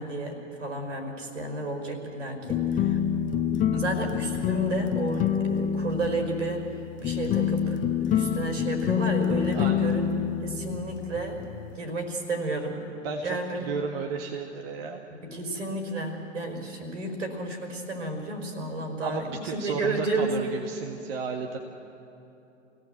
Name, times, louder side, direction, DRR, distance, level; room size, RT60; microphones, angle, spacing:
voice 1, 0.0-3.0 3.7-6.7 7.0-7.8 8.1-11.4 11.8-12.8 13.2-13.7 15.1-20.4, right 2 dB, 70° right, 5 dB, 5.2 m, -32 dB
sound 1, 2.5-11.8, left 8 dB, 20° left, 0.9 m, -27 dB
voice 2, 9.5-9.9 13.0-15.0 19.0-21.6, right 5 dB, 50° right, 3 dB, 1.8 m, -33 dB
28.5 x 17.5 x 8.0 m, 2.9 s
figure-of-eight pair, 105°, 38 cm